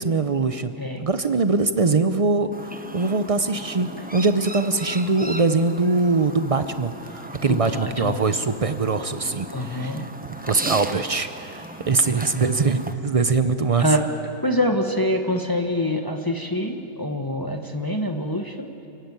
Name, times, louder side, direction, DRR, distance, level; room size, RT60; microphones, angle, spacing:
voice 1, 0.0-0.7 1.0-2.5 2.9-10.0 10.4-13.9, right 3 dB, 65° right, 10 dB, 0.3 m, -22 dB
Chirp tweet, 2.5-12.9, right 1 dB, 10° right, 0.5 m, -37 dB
voice 2, 7.5-8.1 9.5-10.0 13.8-14.1 14.4-18.7, left 1 dB, 15° left, 4 dB, 1.1 m, -25 dB
28.0 x 16.0 x 9.5 m, 2.9 s
omnidirectional pair, 1.7 m